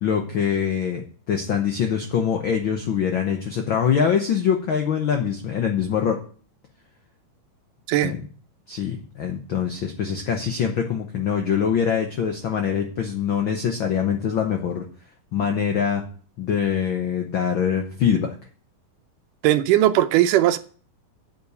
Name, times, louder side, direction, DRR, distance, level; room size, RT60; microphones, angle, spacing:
voice 1, 0.0-6.2 8.0-8.2 8.7-14.8 15.3-16.0 16.4-18.3, left 7 dB, 85° left, 1.1 m, -24 dB
voice 2, 19.4-20.6, right 13 dB, 85° right, 2.2 m, -18 dB
9.0 x 5.6 x 7.9 m
omnidirectional pair, 3.8 m